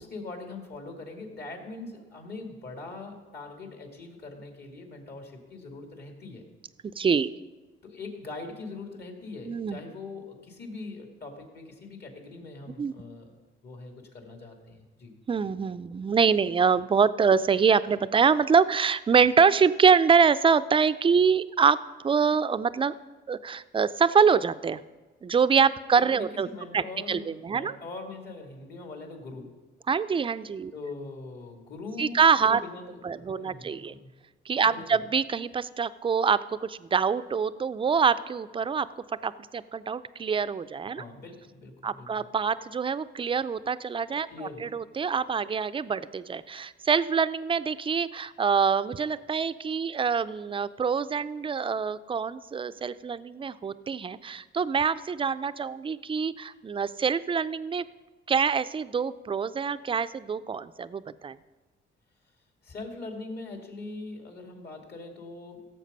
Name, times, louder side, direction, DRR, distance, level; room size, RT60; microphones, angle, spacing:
voice 1, 0.0-6.4 7.8-13.3 13.6-15.2 25.9-29.5 30.7-34.1 34.7-35.0 41.0-42.2 44.3-44.6 62.6-65.7, left 3 dB, 55° left, 3 dB, 2.5 m, -42 dB
voice 2, 7.0-7.4 9.5-9.8 12.8-12.9 15.3-21.8 22.0-22.9 23.3-24.8 25.2-26.5 26.7-27.8 29.9-30.7 32.0-32.6 33.0-33.9 34.5-38.9 39.2-41.0 41.8-57.8 58.3-61.4, right 6 dB, 25° right, 15 dB, 0.4 m, -25 dB
16.0 x 7.2 x 5.4 m, 1.2 s
cardioid pair, 90°, 20 cm